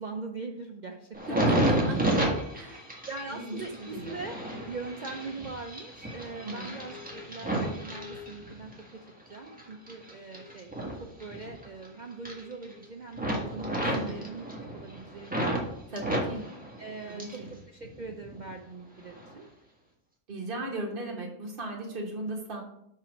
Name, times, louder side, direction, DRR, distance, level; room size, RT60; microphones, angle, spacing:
voice 1, 0.0-1.4 3.1-4.4 4.7-14.5 14.7-16.2 16.8-17.4 17.7-19.5, right 3 dB, 60° right, 3 dB, 0.4 m, -41 dB
sound 1, 1.1-8.8 9.3-11.9 12.1-12.8 13.1-15.6 16.0-17.5 17.8-18.5 19.1-19.3, right 1 dB, 5° right, 1.3 m, -31 dB
voice 2, 1.5-2.2 2.5-2.9 3.3-3.6 3.9-4.2 6.4-6.8 13.9-14.3 15.9-16.4 17.1-17.5 20.3-22.6, right 1 dB, 40° right, -2 dB, 1.5 m, -37 dB
5.7 x 4.8 x 6.2 m, 0.77 s
omnidirectional pair, 1.5 m